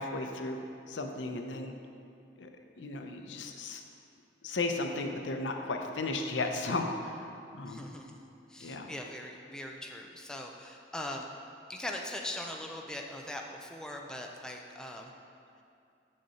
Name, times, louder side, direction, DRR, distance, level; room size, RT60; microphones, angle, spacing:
voice 1, 0.0-1.7 2.4-2.5 2.8-3.8 4.4-7.9 8.6-8.9, left 2 dB, 85° left, 4 dB, 0.6 m, -35 dB
voice 2, 7.6-8.2 8.5-11.3 11.7-15.1, left 1 dB, 5° left, 1 dB, 0.4 m, -41 dB
6.6 x 6.6 x 4.1 m, 2.5 s
head